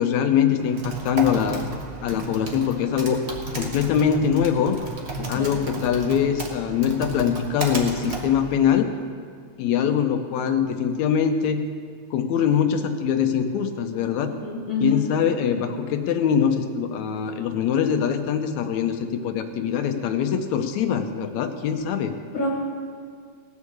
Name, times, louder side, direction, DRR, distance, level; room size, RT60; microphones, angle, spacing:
voice 1, 0.0-1.7 2.0-3.2 3.5-4.8 5.3-8.9 9.6-11.6 12.1-14.3 14.8-22.2, left 8 dB, 80° left, 6 dB, 2.0 m, -23 dB
Typing, 0.6-8.8, right 2 dB, 55° right, 0.7 m, -33 dB
voice 2, 5.2-5.6 14.2-15.1 22.3-22.5, left 2 dB, 50° left, -3 dB, 2.0 m, -28 dB
18.5 x 6.5 x 7.1 m, 2.1 s
omnidirectional pair, 3.3 m